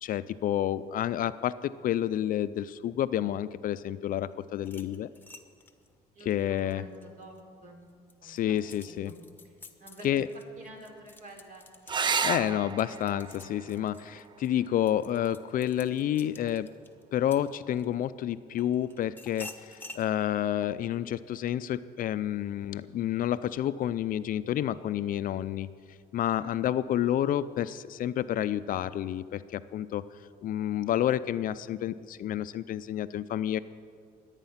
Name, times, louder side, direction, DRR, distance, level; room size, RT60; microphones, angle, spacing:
voice 1, 0.0-5.1 6.3-6.8 8.2-9.1 10.0-10.3 12.2-16.7 17.1-25.7 26.1-30.0 30.4-33.6, left 11 dB, 55° left, 14 dB, 0.5 m, -29 dB
sound 1, 4.6-7.4 7.9-18.0 18.6-20.1, left 2 dB, 10° left, 1.1 m, -50 dB
voice 2, 6.1-7.4 7.6-7.8 8.2-8.6 8.9-9.1 9.4-10.2 10.6-12.0 26.4-26.6, right 1 dB, 55° right, 1 dB, 3.8 m, -49 dB
sound 2, 11.9-16.9 18.8-19.4 22.9-23.0 23.3-23.4, right 6 dB, 25° right, 0.4 m, -35 dB
22.5 x 8.9 x 5.7 m, 2.1 s
cardioid pair, 110°, 17 cm